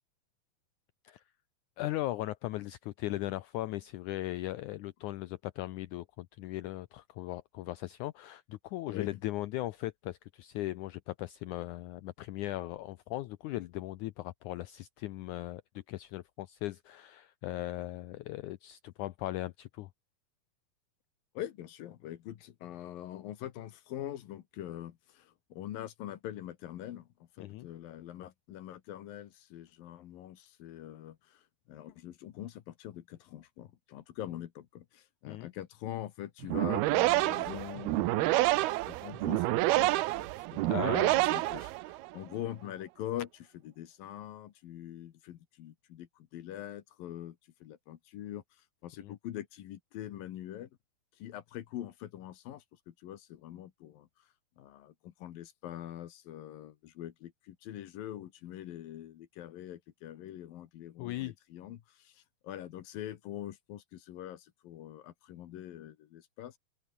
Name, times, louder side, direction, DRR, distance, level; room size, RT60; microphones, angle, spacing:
voice 1, 1.8-19.9 27.4-27.7 35.3-35.5 40.7-41.2 49.0-49.1 61.0-61.3, left 16 dB, 85° left, 1.7 m, -38 dB
voice 2, 21.3-27.1 27.4-38.5 38.8-48.4 48.8-50.7 51.2-54.1 54.6-66.6, left 12 dB, 70° left, 3.0 m, -44 dB
sound 1, 36.4-42.2, right 19 dB, 85° right, 2.7 m, -28 dB
open air
omnidirectional pair, 4.4 m